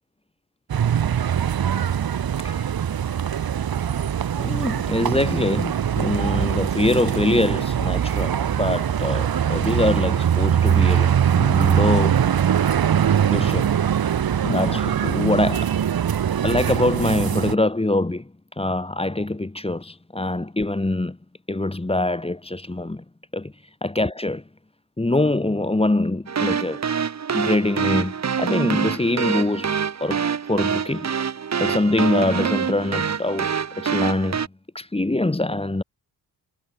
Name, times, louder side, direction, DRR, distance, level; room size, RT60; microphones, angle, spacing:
sound 1, 0.7-17.5, right 9 dB, 65° right, 2.3 m, -22 dB
voice 1, 4.4-12.2 13.3-13.7 14.4-15.8 16.4-21.2 21.5-23.0 23.3-24.4 25.0-26.8 27.3-31.1 31.6-34.4 34.7-35.8, left 2 dB, 15° left, 4.0 m, -24 dB
sound 2, 26.3-34.5, right 7 dB, 45° right, 1.5 m, -25 dB
cardioid pair, 95°, 38 cm